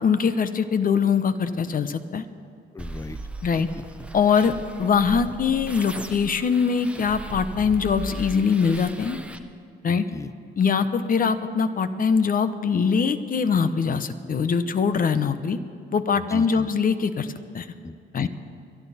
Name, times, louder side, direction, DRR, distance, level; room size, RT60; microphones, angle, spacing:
voice 1, 0.0-2.2 3.4-3.7 4.1-9.2 9.8-10.0 10.6-15.6 15.9-17.7 18.1-18.3, left 6 dB, 45° left, 11 dB, 0.9 m, -22 dB
voice 2, 2.7-3.2 3.6-4.1 4.5-4.6 9.9-10.3 16.2-16.7 17.8-18.3, left 3 dB, 15° left, 13 dB, 0.7 m, -38 dB
sound 1, 2.8-9.4, right 2 dB, 5° right, 0.9 m, -38 dB
23.0 x 11.5 x 4.3 m, 2.5 s
cardioid pair, 90°, 20 cm